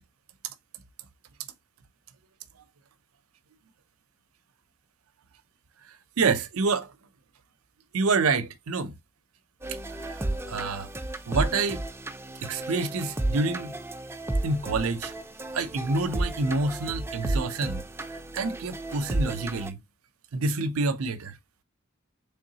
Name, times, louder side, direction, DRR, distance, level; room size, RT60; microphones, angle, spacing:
voice 1, 6.2-6.9 7.9-9.0 9.9-10.9 11.3-11.8 12.4-13.7 14.4-15.1 15.5-17.8 18.1-19.8 20.3-21.4, right 3 dB, 90° right, 0.5 m, -27 dB
sound 1, 9.6-19.7, right 1 dB, 10° right, 0.4 m, -33 dB
3.7 x 3.4 x 2.7 m
head